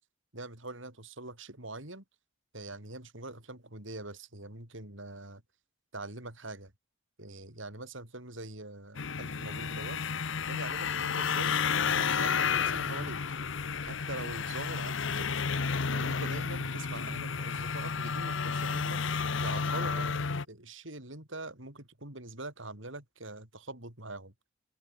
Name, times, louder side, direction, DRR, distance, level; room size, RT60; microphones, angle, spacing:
voice 1, 0.3-2.0 2.5-5.4 5.9-6.7 7.2-10.0 10.5-13.2 13.8-15.4 15.9-19.0 19.4-24.3, right 2 dB, 70° right, 5.5 m, -43 dB
sound 1, 8.9-20.4, left 5 dB, 70° left, 0.9 m, -31 dB
head